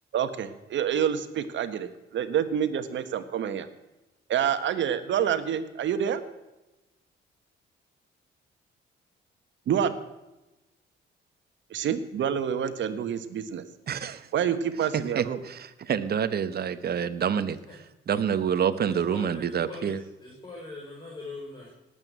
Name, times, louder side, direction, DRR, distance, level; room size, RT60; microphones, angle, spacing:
voice 1, 0.1-3.7 4.3-6.2 9.7-9.9 11.7-13.6 14.3-15.4, right 9 dB, 70° right, 11 dB, 1.6 m, -27 dB
voice 2, 13.9-14.3 15.1-17.6 18.1-20.0, right 8 dB, 50° right, 12 dB, 1.2 m, -27 dB
voice 3, 18.8-21.7, left 2 dB, 25° left, -3 dB, 5.6 m, -42 dB
18.5 x 8.4 x 8.2 m, 1.0 s
cardioid pair, 90°, 20 cm